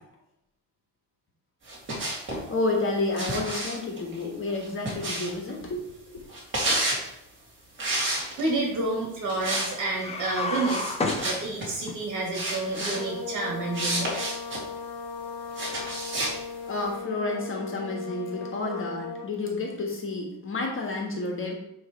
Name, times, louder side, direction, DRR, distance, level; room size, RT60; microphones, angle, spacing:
sound 1, 1.7-2.4 3.2-5.5 6.3-7.0 7.8-8.6 9.3-9.7 10.0-10.1 10.6-11.7 12.3-13.0 13.7-14.6 15.5-16.4, right 1 dB, 30° right, 2.4 m, -30 dB
voice 1, 2.5-5.8 6.1-6.2 16.7-21.5, left 3 dB, 35° left, 1 dB, 1.4 m, -30 dB
voice 2, 8.4-10.9 11.2-14.1, right 2 dB, 50° right, -2 dB, 2.7 m, -29 dB
Slow down brake crash, 9.9-12.0, left 3 dB, 15° left, 0.7 m, -30 dB
sound 2, 12.8-19.4, left 5 dB, 75° left, 0.8 m, -37 dB
9.5 x 3.3 x 4.5 m, 0.83 s
cardioid pair, 150°, 38 cm